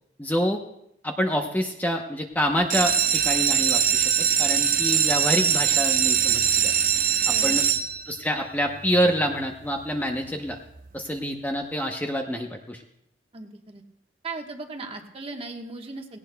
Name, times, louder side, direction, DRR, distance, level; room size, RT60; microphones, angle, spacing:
voice 1, 0.2-0.6 1.0-4.1 4.4-6.7 7.3-7.6 8.1-10.6 10.9-12.8, equal, 10° left, 3 dB, 0.8 m, -27 dB
sound 1, 2.6-8.3 8.9-9.4 9.8-9.9 10.2-10.3 10.7-10.8, right 8 dB, 50° right, 0.9 m, -22 dB
voice 2, 7.3-7.6 13.3-13.8 14.2-16.2, right 3 dB, 35° right, 3 dB, 1.3 m, -37 dB
17.5 x 17.5 x 2.3 m, 0.76 s
head